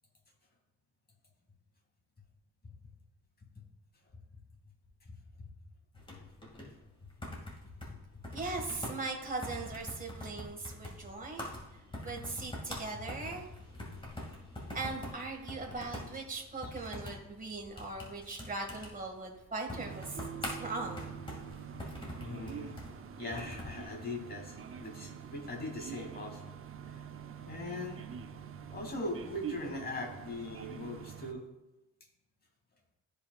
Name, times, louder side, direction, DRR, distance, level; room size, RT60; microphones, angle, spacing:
voice 1, 5.0-5.5 7.9-8.0 13.9-14.3 14.7-14.8 22.2-22.8 23.1-26.5 26.9-27.0 27.4-28.2 28.6-31.5, left 2 dB, 30° left, 1 dB, 2.5 m, -41 dB
sound 1, 5.9-23.8, left 1 dB, 15° left, 2.3 m, -45 dB
voice 2, 8.3-13.5 14.7-21.1, right 3 dB, 30° right, 1 dB, 1.9 m, -40 dB
sound 2, 19.7-31.3, right 8 dB, 45° right, 0.7 m, -45 dB
13.5 x 5.4 x 2.4 m, 0.96 s
cardioid pair, 90°, 30 cm